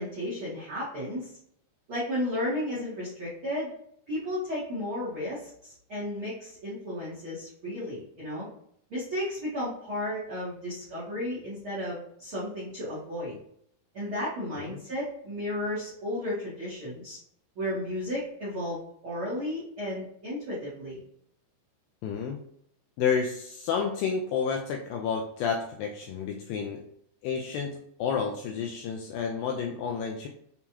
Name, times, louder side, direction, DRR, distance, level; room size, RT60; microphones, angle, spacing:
voice 1, 0.0-1.3 1.9-3.7 4.1-8.5 8.9-13.4 13.9-17.2 17.5-21.0, left 1 dB, 65° right, -8 dB, 1.3 m, -33 dB
voice 2, 22.0-22.4 23.0-26.8 27.2-30.3, left 6 dB, 85° left, 2 dB, 2.0 m, -30 dB
6.8 x 2.3 x 2.9 m, 0.69 s
omnidirectional pair, 4.5 m